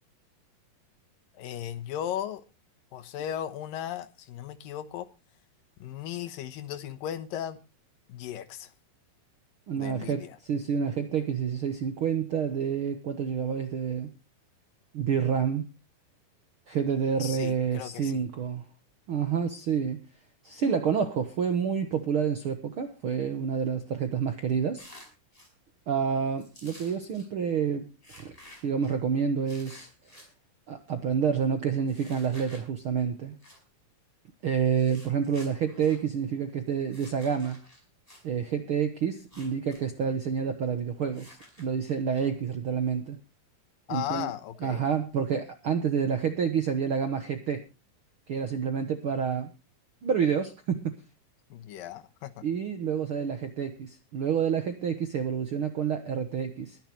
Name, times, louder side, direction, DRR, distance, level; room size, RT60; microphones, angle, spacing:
voice 1, 1.3-2.4 2.9-5.1 5.8-7.6 8.1-8.7 9.7-10.4 17.2-18.2 43.9-44.8 51.5-52.4, left 11 dB, 80° left, 2.8 m, -36 dB
voice 2, 9.7-14.1 14.9-15.7 16.7-18.6 19.1-20.0 20.4-24.8 25.9-28.3 28.6-29.9 30.7-33.4 34.4-37.6 38.2-43.2 43.9-44.3 44.6-47.6 48.3-49.5 50.0-50.9 52.4-56.8, right 7 dB, 65° right, 1.3 m, -28 dB
sound 1, 24.8-25.5 26.4-27.3 28.0-28.9 29.5-30.3 31.9-32.7 33.4-33.6 34.7-36.0 36.8-38.2 39.2-39.8 40.1-40.2 41.1-42.2, left 1 dB, 10° left, 5.0 m, -52 dB
22.0 x 10.5 x 3.1 m
omnidirectional pair, 4.1 m